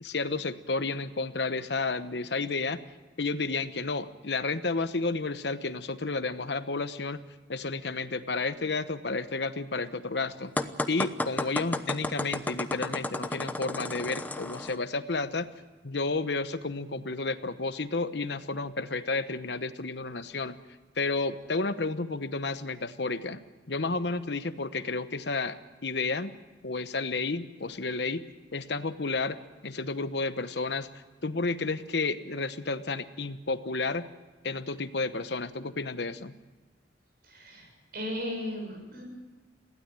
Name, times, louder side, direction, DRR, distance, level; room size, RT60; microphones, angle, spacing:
voice 1, 0.0-2.8 3.2-7.2 7.5-10.5 10.9-15.5 15.8-20.6 21.0-23.4 23.7-25.6 25.8-26.3 26.6-28.2 28.5-29.4 29.6-30.9 31.2-34.1 34.4-36.3, left 3 dB, 65° left, 11 dB, 1.0 m, -31 dB
sound 1, 10.6-14.8, left 1 dB, 10° left, 0.8 m, -32 dB
voice 2, 37.2-39.0, left 1 dB, 55° right, 2 dB, 7.1 m, -36 dB
22.0 x 16.0 x 9.0 m, 1.2 s
head